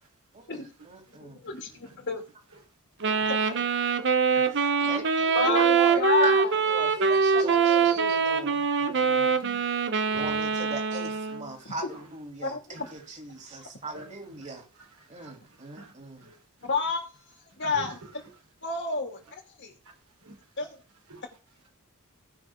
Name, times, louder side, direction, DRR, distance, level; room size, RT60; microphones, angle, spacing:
voice 1, 0.3-1.4 3.0-3.1 4.5-6.4 6.6-9.4 10.1-14.6 15.1-16.3, right 3 dB, 35° right, 3.3 m, -38 dB
voice 2, 1.2-2.2 3.2-3.4 4.8-4.9 5.3-6.5 7.3-8.2 12.4-12.9 13.6-13.7 16.6-17.0 17.6-18.0 18.6-19.7 20.6-20.7, left 4 dB, 55° left, 2.8 m, -30 dB
Wind instrument woodwind instrument, 3.0-11.5, right 5 dB, 55° right, 1.1 m, -24 dB
voice 3, 4.3-4.8 7.4-7.9 8.5-8.7 9.4-9.7 10.1-10.7 11.3-12.0 12.7-12.9 13.3-13.4 13.9-14.1 14.5-15.9 16.2-16.4 17.6-18.1 19.8-19.9 20.2-20.4 21.1-21.2, right 2 dB, 75° right, 4.1 m, -48 dB
18.5 x 6.3 x 3.8 m
head